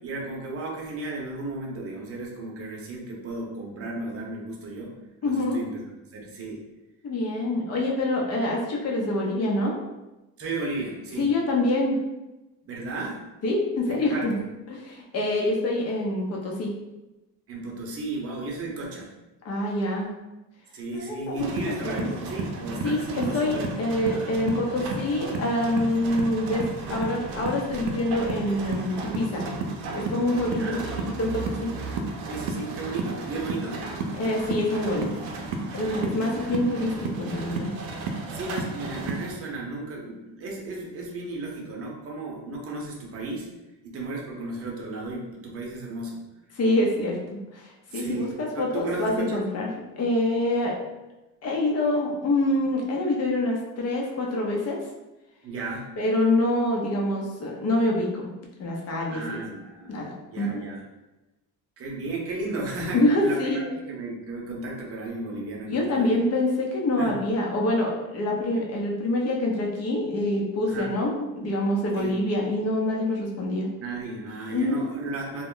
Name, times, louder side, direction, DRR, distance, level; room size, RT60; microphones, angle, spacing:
voice 1, 0.0-4.9 5.2-5.7 6.1-6.6 10.4-11.3 12.6-13.2 13.9-14.4 17.5-19.1 20.7-23.7 24.0-24.4 30.5-31.1 32.3-33.8 35.7-36.3 38.3-43.5 43.8-46.2 47.9-49.4 55.4-55.9 59.1-59.9 60.3-60.8 61.8-66.3 67.0-67.2 70.7-70.9 72.0-72.1 73.8-75.4, right 2 dB, 35° right, -2 dB, 0.7 m, -34 dB
voice 2, 5.2-5.6 7.0-9.7 11.2-12.0 13.4-14.4 14.7-16.7 19.4-20.1 21.0-22.1 22.8-29.4 29.9-30.8 31.2-31.7 34.1-35.1 35.7-37.7 46.6-47.7 47.9-49.7 50.0-50.8 51.4-54.8 56.0-58.3 58.6-59.4 59.9-60.6 62.9-63.6 65.7-73.7 74.5-74.8, left 1 dB, 40° left, -1 dB, 0.7 m, -26 dB
sound 1, 21.4-39.3, right 3 dB, 80° right, 0.6 m, -33 dB
2.3 x 2.0 x 3.7 m, 1.0 s
cardioid pair, 110°, 38 cm